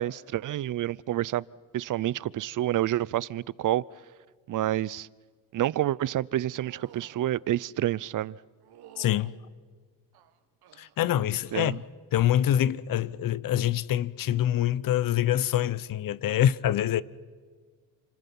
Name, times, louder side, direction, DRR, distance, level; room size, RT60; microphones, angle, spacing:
voice 1, 0.0-1.4 1.7-3.8 4.5-5.1 5.5-8.4 11.5-11.8, right 13 dB, 50° right, 0.6 m, -28 dB
sound 1, 6.6-7.2 8.6-9.4 10.1-11.0 11.5-11.9 12.2-12.7 14.2-14.4, right 10 dB, 70° right, 1.8 m, -53 dB
voice 2, 9.0-9.3 10.8-11.8 12.1-17.0, left 11 dB, 55° left, 0.9 m, -25 dB
30.0 x 26.5 x 5.5 m
cardioid pair, 90°, 40 cm